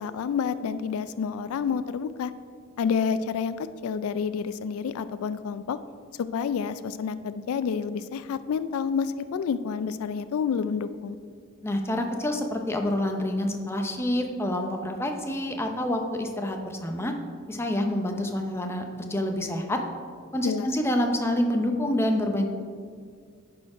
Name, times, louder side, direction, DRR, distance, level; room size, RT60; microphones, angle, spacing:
voice 1, 0.0-2.3 2.8-5.8 6.2-11.2 20.4-20.7, left 6 dB, 85° left, 13 dB, 0.3 m, -29 dB
voice 2, 11.6-17.1 17.5-19.8 20.3-22.5, left 1 dB, 10° left, 3 dB, 0.6 m, -27 dB
11.0 x 4.4 x 4.8 m, 2.1 s
head